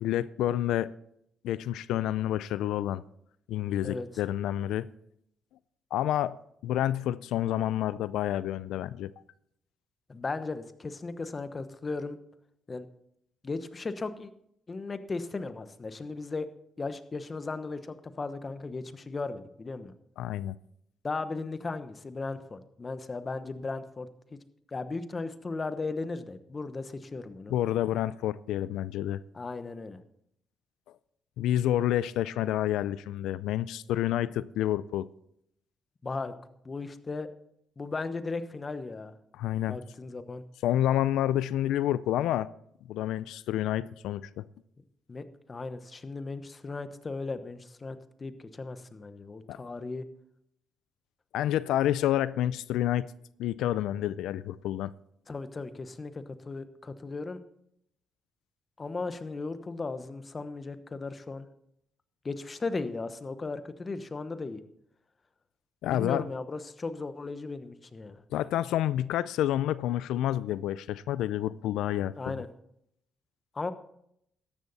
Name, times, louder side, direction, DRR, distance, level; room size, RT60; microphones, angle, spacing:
voice 1, 0.0-0.9 1.4-3.0 3.5-4.9 5.9-6.4 6.6-9.1 20.2-20.5 27.5-29.2 31.4-35.1 39.4-39.8 40.6-42.5 42.9-44.5 49.5-49.6 51.3-53.1 53.4-54.9 65.8-66.2 68.3-72.3, left 12 dB, 85° left, 17 dB, 0.4 m, -29 dB
voice 2, 10.1-12.2 12.7-12.9 13.4-14.3 14.7-16.5 16.8-19.9 21.0-24.1 24.7-27.5 29.3-30.0 36.0-36.3 36.6-37.3 37.8-39.1 39.7-40.4 45.1-50.1 55.3-57.4 58.8-61.5 62.2-64.6 65.9-68.2 72.2-72.5 73.5-73.7, left 3 dB, 30° left, 11 dB, 1.0 m, -36 dB
13.5 x 10.5 x 4.1 m, 0.74 s
cardioid pair, 90°, 0 cm